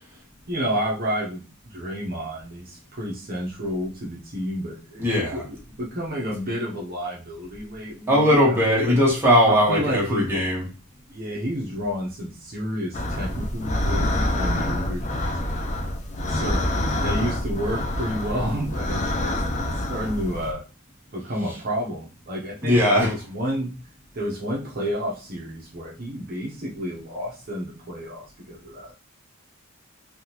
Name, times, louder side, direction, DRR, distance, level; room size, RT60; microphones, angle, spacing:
voice 1, 0.5-9.0 9.4-10.3 11.1-15.7 16.3-16.7 17.0-19.3 19.6-20.6 21.1-23.8 24.1-28.9, equal, 45° right, 0.7 m, -30 dB
voice 2, 5.0-5.4 8.1-10.6 22.6-23.1, equal, 10° right, 1.1 m, -19 dB
sound 1, 12.9-20.5, left 1 dB, 35° left, 0.4 m, -26 dB
3.5 x 2.3 x 2.9 m
head